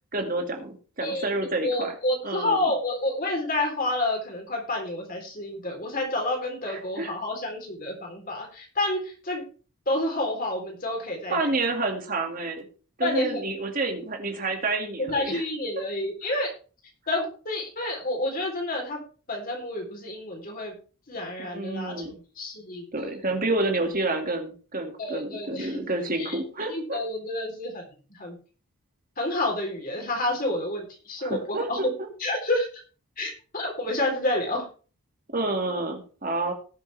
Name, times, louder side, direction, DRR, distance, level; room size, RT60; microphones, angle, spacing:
voice 1, 0.1-1.9 2.2-2.7 6.7-7.1 11.3-12.6 13.0-15.4 21.4-22.2 22.9-27.0 31.2-32.1 35.3-36.5, right 2 dB, 40° right, 3 dB, 2.2 m, -29 dB
voice 2, 1.6-9.4 9.9-11.4 13.0-13.4 15.0-16.5 17.1-19.0 19.3-20.8 21.1-22.0 22.4-23.1 25.0-25.8 26.2-26.4 26.7-27.8 28.1-28.4 29.2-31.9 32.2-32.8 33.2-34.7, left 1 dB, 40° left, 1 dB, 3.7 m, -29 dB
18.5 x 7.1 x 3.4 m, 0.37 s
head